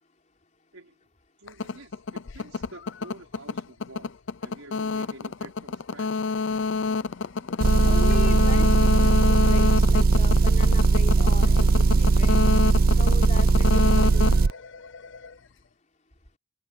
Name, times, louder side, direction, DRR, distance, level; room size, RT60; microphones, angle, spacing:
voice 1, 1.4-4.1 4.4-6.2, right 2 dB, 85° right, 4.9 m, -48 dB
sound 1, 1.5-15.3, left 4 dB, 60° left, 0.6 m, -27 dB
sound 2, 6.5-12.7, equal, 10° left, 3.2 m, -52 dB
Motor vehicle (road) / Engine, 7.6-14.5, right 4 dB, 45° right, 0.4 m, -19 dB
voice 2, 7.8-12.4 13.0-14.4, left 2 dB, 35° left, 4.0 m, -39 dB
open air
head